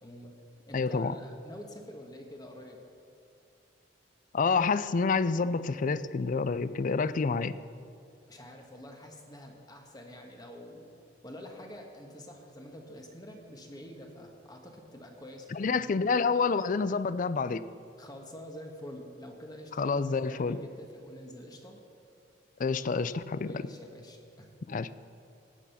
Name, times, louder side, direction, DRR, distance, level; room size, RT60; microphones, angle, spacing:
voice 1, 0.0-0.3 0.7-2.8 8.3-10.9 11.2-15.9 18.0-21.8 23.4-24.5, left 1 dB, 20° left, 2 dB, 1.5 m, -47 dB
voice 2, 0.7-1.1 4.3-7.6 15.5-17.6 19.8-20.6 22.6-23.5 24.7-24.9, left 4 dB, 45° left, 15 dB, 0.4 m, -28 dB
17.5 x 8.6 x 5.7 m, 2.5 s
head